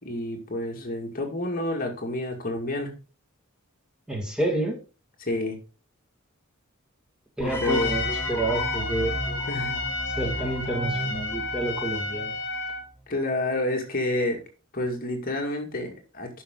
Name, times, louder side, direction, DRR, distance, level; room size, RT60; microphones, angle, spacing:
voice 1, 0.0-2.9 5.2-5.6 7.4-7.9 9.5-9.8 13.1-14.4 14.7-16.4, left 1 dB, 45° left, 2 dB, 2.2 m, -29 dB
voice 2, 4.1-4.8 7.4-9.5 10.1-12.4, right 2 dB, 5° right, -1 dB, 2.0 m, -29 dB
sound 1, 7.4-12.5, equal, 10° left, 1.3 m, -34 dB
Trumpet, 7.6-12.9, left 3 dB, 60° left, 2.1 m, -31 dB
10.0 x 6.1 x 3.8 m, 0.33 s
head